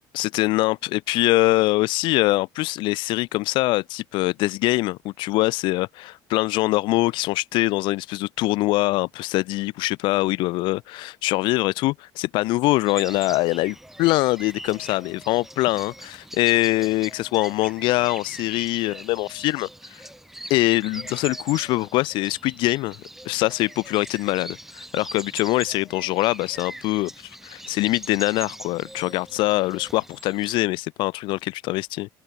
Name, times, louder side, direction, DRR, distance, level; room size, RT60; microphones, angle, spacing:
voice 1, 0.1-20.0 20.5-23.0 23.2-32.1, left 20 dB, 75° left, 0.8 m, -23 dB
sound 1, 12.8-30.6, right 1 dB, 5° right, 1.8 m, -41 dB
cardioid pair, 130°, 8 cm